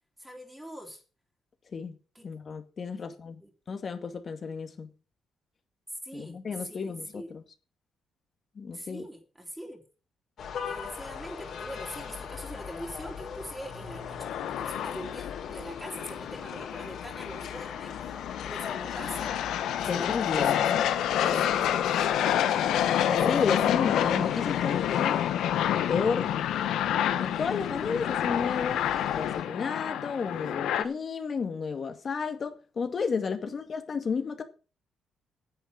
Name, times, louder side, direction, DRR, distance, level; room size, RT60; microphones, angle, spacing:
voice 1, 0.2-1.0 2.2-2.3 3.0-3.1 3.4-3.5 6.0-7.3 8.7-9.8 10.6-18.1 18.5-19.4 19.7-20.7 21.0-22.2 22.5-22.8 23.1-23.5 33.4-33.6, equal, 5° right, 3.4 m, -43 dB
voice 2, 2.2-3.4 3.7-4.9 6.1-7.4 8.6-9.0 19.9-20.8 21.2-21.8 23.1-25.2 25.6-26.3 27.2-28.8 29.1-34.4, left 5 dB, 45° left, 2.1 m, -32 dB
sound 1, 10.4-29.4, left 6 dB, 60° left, 4.3 m, -41 dB
sound 2, 13.9-30.8, left 10 dB, 80° left, 1.2 m, -28 dB
10.0 x 8.1 x 6.4 m
cardioid pair, 90°, 0 cm